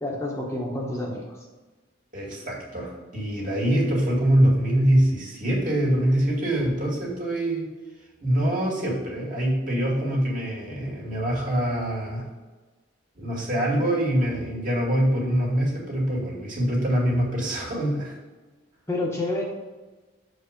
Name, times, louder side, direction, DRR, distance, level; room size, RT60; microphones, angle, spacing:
voice 1, 0.0-1.4 18.9-19.4, left 2 dB, 15° left, -2 dB, 0.9 m, -28 dB
voice 2, 2.1-7.7 8.2-12.3 13.2-18.2, right 1 dB, 45° right, -3 dB, 2.2 m, -24 dB
6.5 x 4.7 x 5.1 m, 1.3 s
head